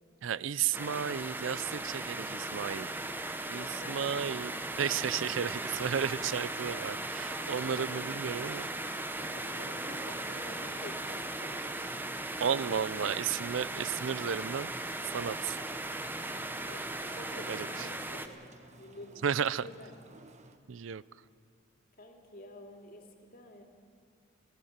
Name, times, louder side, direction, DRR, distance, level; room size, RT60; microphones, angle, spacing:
voice 1, 0.2-2.9 3.5-4.5 4.8-8.7 12.4-14.7 15.1-15.6 17.5-17.7 19.2-19.6 20.7-21.0, right 8 dB, 75° right, 19 dB, 0.5 m, -33 dB
Rain - Hard, 0.7-18.3, right 2 dB, 10° right, 0.9 m, -37 dB
voice 2, 3.5-4.2 6.2-6.5 6.8-8.2 9.2-12.0 16.3-18.3 18.8-19.9 22.0-23.6, left 1 dB, 50° left, 2 dB, 2.6 m, -49 dB
sound 1, 13.9-20.6, right 2 dB, 40° right, 1.0 m, -56 dB
24.5 x 15.5 x 7.3 m, 2.3 s
head